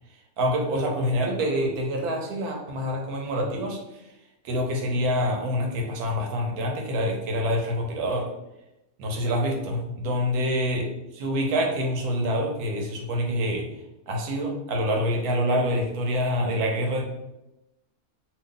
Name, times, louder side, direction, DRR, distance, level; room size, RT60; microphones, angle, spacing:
voice 1, 0.4-3.8 4.4-8.3 9.0-10.8 11.2-13.7 14.1-17.0, equal, 85° right, 1 dB, 1.2 m, -26 dB
2.8 x 2.5 x 3.7 m, 0.94 s
omnidirectional pair, 1.5 m